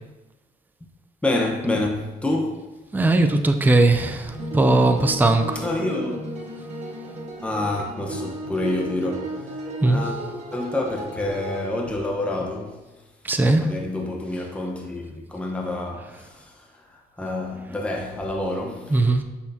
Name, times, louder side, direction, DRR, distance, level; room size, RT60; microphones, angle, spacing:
voice 1, 1.2-2.7 5.5-6.3 7.4-10.2 10.5-12.9 13.6-19.2, left 2 dB, 5° left, 1.0 m, -28 dB
voice 2, 2.9-5.6 9.8-10.0 13.2-13.7 18.9-19.2, right 2 dB, 10° right, 0.5 m, -19 dB
sound 1, 4.3-11.7, right 1 dB, 40° right, 1.7 m, -34 dB
8.2 x 6.4 x 2.8 m
cardioid pair, 110°, 17 cm